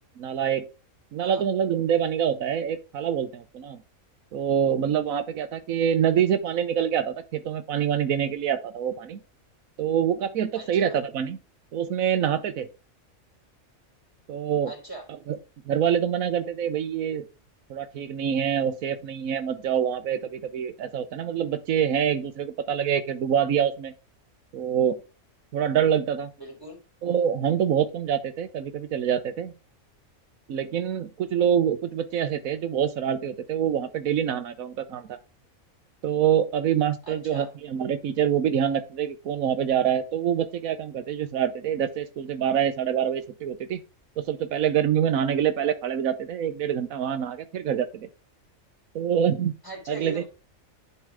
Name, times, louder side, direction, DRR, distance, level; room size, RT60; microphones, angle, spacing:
voice 1, 0.2-0.7 1.1-3.8 4.3-9.2 9.8-11.4 11.7-12.7 14.3-14.7 15.3-15.4 15.7-17.3 17.7-23.9 24.5-25.0 25.5-26.3 27.0-29.5 30.5-35.2 36.0-43.8 44.2-48.1 48.9-49.5 49.9-50.2, right 9 dB, 90° right, 1.3 m, -25 dB
voice 2, 10.5-10.9 14.6-15.0 26.4-26.8 37.1-37.5 49.6-50.3, right 1 dB, 15° left, 3.2 m, -39 dB
10.5 x 4.5 x 3.6 m
omnidirectional pair, 1.4 m